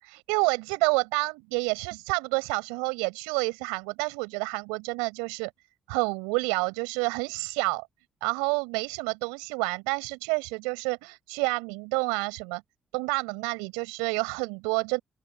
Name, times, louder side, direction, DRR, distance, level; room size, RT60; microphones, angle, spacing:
voice 1, 0.0-5.5 5.9-7.9 8.2-12.6 12.9-15.0, right 31 dB, 90° right, 7.2 m, -29 dB
open air
hypercardioid pair, 45°, 0 cm